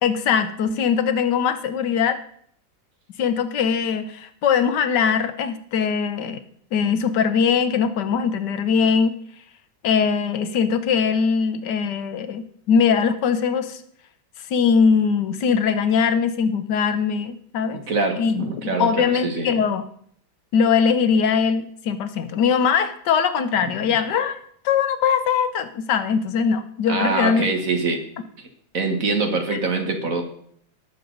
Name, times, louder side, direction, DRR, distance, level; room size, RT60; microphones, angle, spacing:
voice 1, 0.0-2.2 3.2-6.4 6.7-9.2 9.8-13.8 14.5-17.8 18.2-19.9 20.5-24.4 24.6-27.5 29.5-29.6, left 6 dB, 65° left, 10 dB, 1.4 m, -21 dB
voice 2, 17.7-19.5 23.9-24.0 26.9-28.0 28.7-30.2, right 3 dB, 45° right, 4 dB, 1.8 m, -24 dB
19.5 x 6.8 x 3.9 m, 0.62 s
omnidirectional pair, 2.1 m